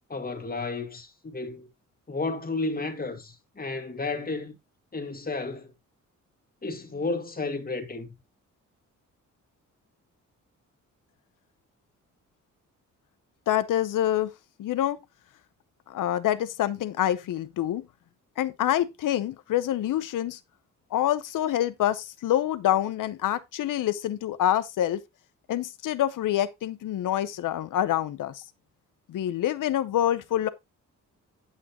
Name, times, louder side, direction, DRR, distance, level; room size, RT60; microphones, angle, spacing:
voice 1, 0.1-1.7 2.1-4.6 4.9-5.7 6.6-8.1, left 3 dB, 30° left, 1.8 m, -32 dB
voice 2, 13.5-14.3 14.6-15.0 15.9-17.9 18.4-20.4 20.9-25.0 25.5-28.4 29.1-30.5, left 12 dB, 80° left, 0.8 m, -26 dB
8.7 x 8.4 x 2.9 m
cardioid pair, 95°, 31 cm